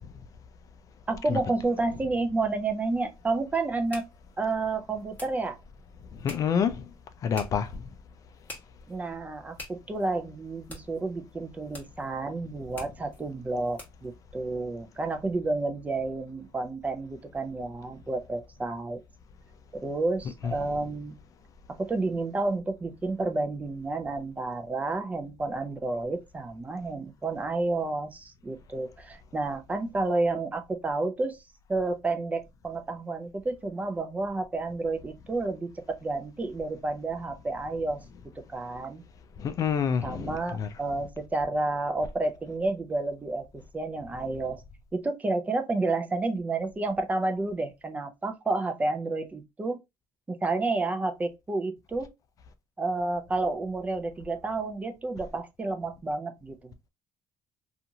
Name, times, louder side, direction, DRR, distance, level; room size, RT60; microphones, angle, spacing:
voice 1, 1.1-4.1 4.4-5.6 8.9-19.0 19.8-21.2 21.8-31.4 31.7-38.0 38.5-39.0 40.0-43.4 43.7-44.6 44.9-49.8 50.3-52.1 52.8-56.7, right 3 dB, 20° right, 0.5 m, -30 dB
sound 1, 2.5-14.1, left 2 dB, 20° left, 1.2 m, -49 dB
voice 2, 6.2-6.8 7.2-7.7 20.4-20.5 39.4-40.7, left 7 dB, 45° left, 0.4 m, -27 dB
2.8 x 2.4 x 2.6 m
cardioid pair, 130°, 8 cm